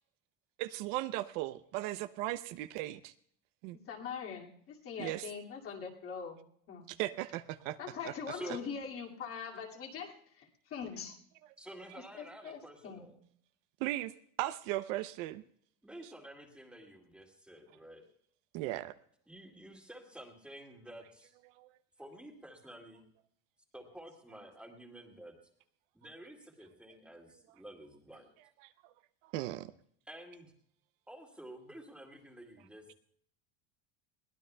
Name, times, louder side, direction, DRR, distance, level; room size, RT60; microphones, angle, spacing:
voice 1, 0.6-3.1 3.6-3.8 5.0-5.3 6.9-7.8 8.0-8.1 13.8-14.1 14.4-15.4 18.5-18.9 21.6-21.7 29.3-29.7, right 16 dB, 65° right, 12 dB, 0.7 m, -37 dB
voice 2, 3.9-7.0 7.8-11.2 12.1-13.1, left 6 dB, 35° left, 0 dB, 2.3 m, -43 dB
voice 3, 8.3-8.7 11.6-13.2 15.8-18.0 19.3-21.3 22.0-23.0 23.7-25.3 25.9-28.3 30.1-30.5 31.1-32.9, right 1 dB, 5° right, 1 dB, 2.1 m, -50 dB
22.0 x 18.0 x 2.2 m, 0.65 s
cardioid pair, 170°, 41 cm